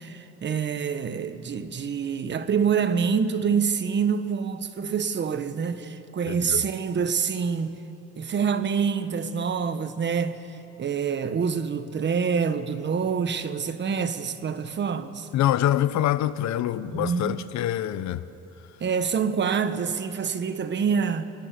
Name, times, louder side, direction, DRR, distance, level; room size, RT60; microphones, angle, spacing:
voice 1, 0.0-7.8 8.2-10.4 10.8-15.3 16.9-17.4 18.8-21.3, right 6 dB, 40° right, 1.2 m, -26 dB
voice 2, 6.3-6.6 15.3-18.2, left 12 dB, 70° left, 0.9 m, -25 dB
29.0 x 19.0 x 6.9 m
cardioid pair, 120°, 30 cm